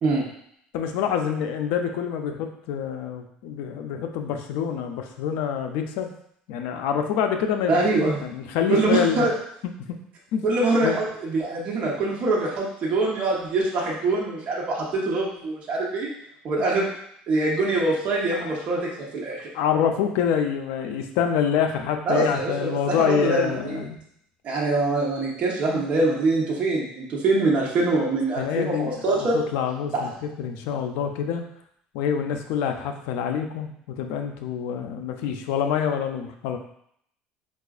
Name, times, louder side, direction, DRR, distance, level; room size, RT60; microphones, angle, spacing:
voice 1, 0.7-6.1 6.5-7.9 8.2-9.2 10.3-10.4 10.8-11.0 16.6-16.7 18.3-18.5 19.5-24.0 28.4-30.1 30.4-31.4 31.9-36.6, left 8 dB, 80° left, 5 dB, 0.4 m, -26 dB
voice 2, 7.7-8.2 8.7-9.3 10.4-16.1 16.4-16.9 17.3-19.5 22.1-23.8 24.4-29.4 29.9-30.0, right 2 dB, 45° right, -4 dB, 0.9 m, -24 dB
4.6 x 2.4 x 2.4 m, 0.70 s
cardioid pair, 120°, 3 cm